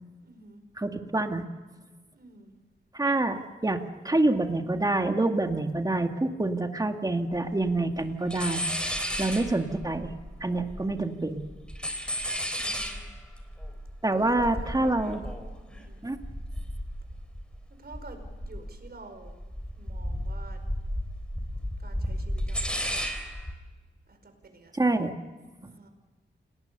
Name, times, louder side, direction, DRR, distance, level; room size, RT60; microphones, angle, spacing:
voice 1, 0.2-0.6 2.1-2.6 12.5-13.0 14.1-15.3 15.7-16.0 17.8-19.4 19.7-20.6 21.8-23.1 24.1-24.7 25.6-25.9, right 3 dB, 55° right, 7 dB, 4.9 m, -49 dB
voice 2, 0.8-1.4 2.9-8.6 9.2-10.1 10.4-11.4 14.0-15.2 16.0-16.2 24.7-25.1, right 2 dB, 20° right, 5 dB, 2.1 m, -26 dB
sound 1, 7.3-7.4 7.6-8.0 8.3-11.1 11.4-17.6 17.9-18.9 19.2-23.5, equal, 5° left, 3.9 m, -34 dB
29.5 x 19.5 x 6.9 m, 1.3 s
wide cardioid pair, 110°, 19 cm